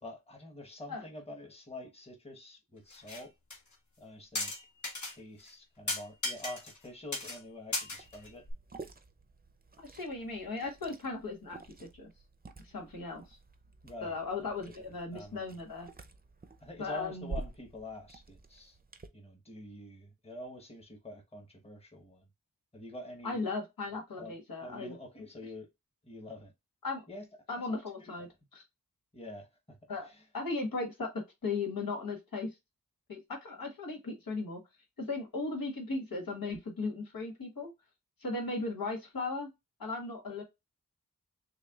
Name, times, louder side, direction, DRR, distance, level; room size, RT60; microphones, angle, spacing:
voice 1, 0.0-3.3 4.0-4.5 5.1-8.5 13.8-14.1 14.4-14.7 15.1-15.5 16.6-18.8 19.1-22.3 22.7-23.4 24.2-25.7 26.0-26.5 27.1-27.3 27.6-28.3 29.1-29.8 30.0-30.2, left 1 dB, 20° left, 1.1 m, -47 dB
sound 1, 2.9-3.2 3.5-3.6 4.4-5.1 5.5-5.6 5.9-6.9 7.1-7.4 7.7-8.5, left 2 dB, 60° left, 1.4 m, -36 dB
Liquid, 8.0-19.1, right 3 dB, 25° right, 0.6 m, -49 dB
voice 2, 9.8-11.6 12.0-12.1 12.7-13.4 14.0-15.9 16.8-17.3 23.2-24.9 26.8-27.0 27.5-28.3 29.9-30.1 30.3-32.5 33.1-34.6 35.0-37.7 38.2-39.5 39.8-40.4, left 3 dB, 90° left, 1.5 m, -37 dB
6.4 x 2.3 x 2.4 m
wide cardioid pair, 75°, 34 cm